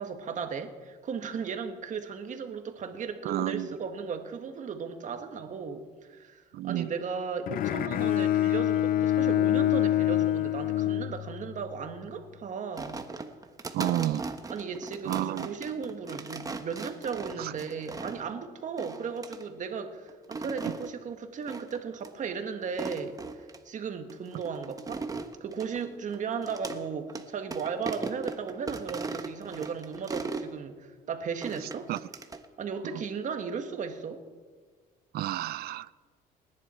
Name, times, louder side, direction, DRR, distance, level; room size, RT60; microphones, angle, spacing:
voice 1, 0.0-13.0 14.5-25.1 25.4-31.9 32.6-34.2, right 6 dB, 45° right, 1.7 m, -36 dB
voice 2, 3.2-3.7 6.5-6.9 13.7-14.2 15.0-15.5 17.4-17.5 31.9-32.0 35.1-35.9, right 14 dB, 65° right, 0.5 m, -30 dB
Bowed string instrument, 7.5-11.7, left 13 dB, 60° left, 0.4 m, -26 dB
sound 1, 12.8-18.3 18.8-19.4 20.1-20.9 21.5-21.8 22.0-22.1 22.6-23.6 24.1-26.8 27.1-27.2 27.5-30.5 31.4-32.5, right 3 dB, 20° right, 1.2 m, -38 dB
29.0 x 10.5 x 4.5 m
cardioid pair, 110°, 17 cm